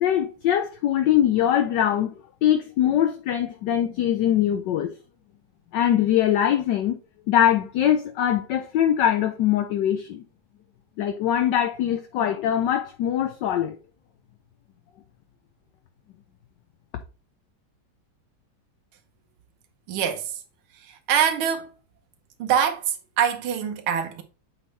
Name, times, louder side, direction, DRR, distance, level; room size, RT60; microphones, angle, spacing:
voice 1, 0.0-2.1 2.4-4.9 5.7-7.0 7.3-10.2 11.0-13.8, left 10 dB, 70° left, 1.1 m, -22 dB
voice 2, 19.9-20.4 20.7-21.7 22.4-24.2, right 8 dB, 80° right, 1.8 m, -24 dB
8.2 x 4.4 x 3.2 m
omnidirectional pair, 2.3 m